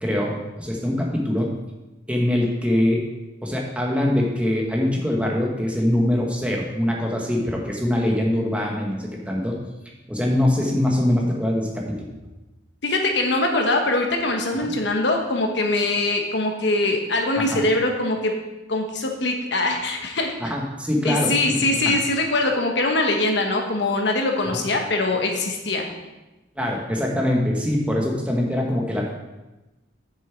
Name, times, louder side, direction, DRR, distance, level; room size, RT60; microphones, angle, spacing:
voice 1, 0.0-1.6 2.1-3.1 3.4-9.6 10.1-12.1 14.6-14.7 17.4-17.6 20.4-22.0 24.5-24.6 26.6-29.1, left 1 dB, 5° right, -1 dB, 1.2 m, -23 dB
voice 2, 12.8-18.3 18.7-20.3 21.0-25.8, left 2 dB, 60° left, 2 dB, 1.2 m, -22 dB
7.2 x 6.9 x 4.5 m, 1.1 s
head